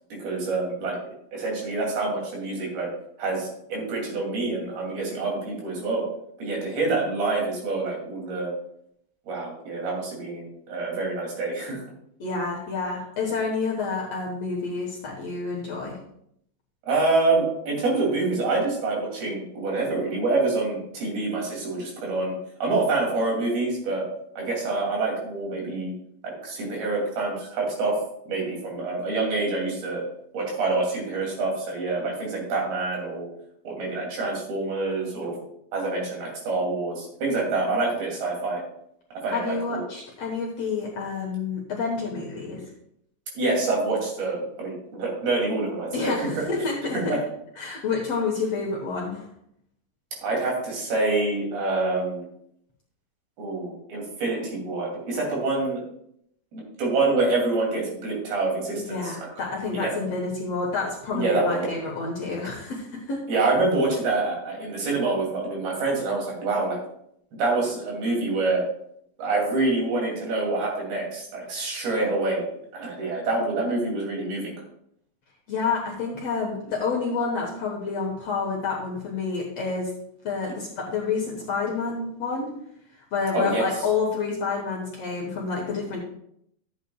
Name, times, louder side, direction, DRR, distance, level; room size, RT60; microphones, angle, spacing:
voice 1, 0.2-1.0 1.3-2.9 3.2-6.0 6.4-8.5 9.3-11.8 16.9-22.4 22.6-24.0 24.4-25.9 26.2-28.0 28.3-30.0 30.3-33.3 33.6-35.4 35.7-38.6 39.2-39.8 43.3-46.4 46.9-47.2 47.6-47.7 50.2-52.2 53.4-55.8 56.5-59.3 59.7-60.0 61.1-61.6 63.3-66.8 67.4-68.6 69.2-72.4 72.7-74.5 83.3-83.7, right 3 dB, 80° right, -2 dB, 4.7 m, -26 dB
voice 2, 12.2-16.0 39.3-42.6 45.9-47.2 47.6-49.3 58.8-63.2 75.5-79.9 80.2-82.5 83.1-86.0, left 4 dB, 60° left, -2 dB, 1.9 m, -29 dB
13.0 x 8.5 x 2.3 m, 0.73 s
omnidirectional pair, 4.3 m